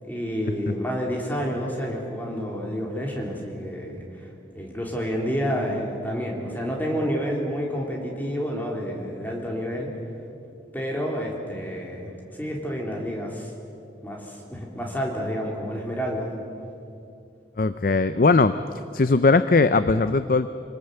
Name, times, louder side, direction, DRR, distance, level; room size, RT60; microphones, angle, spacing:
voice 1, 0.0-9.9 10.7-13.5 14.0-16.3, equal, 10° left, -1 dB, 3.5 m, -29 dB
voice 2, 17.6-18.6 18.9-20.5, left 3 dB, 50° left, 12 dB, 0.5 m, -19 dB
26.0 x 19.5 x 8.0 m, 2.6 s
head